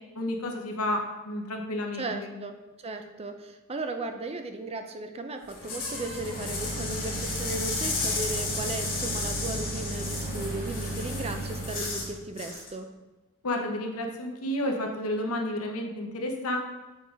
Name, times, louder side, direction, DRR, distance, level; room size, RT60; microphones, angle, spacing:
voice 1, 0.1-2.4 13.4-16.6, left 1 dB, 75° left, 3 dB, 1.0 m, -31 dB
voice 2, 1.9-2.6 2.8-12.9, right 2 dB, 25° right, 7 dB, 0.4 m, -36 dB
sound 1, 5.4-12.1 12.4-12.7, left 3 dB, 45° left, 1.8 m, -34 dB
Vending machine motor, 5.6-12.2, right 2 dB, 85° right, 2.0 m, -35 dB
6.9 x 4.7 x 3.8 m, 1.1 s
head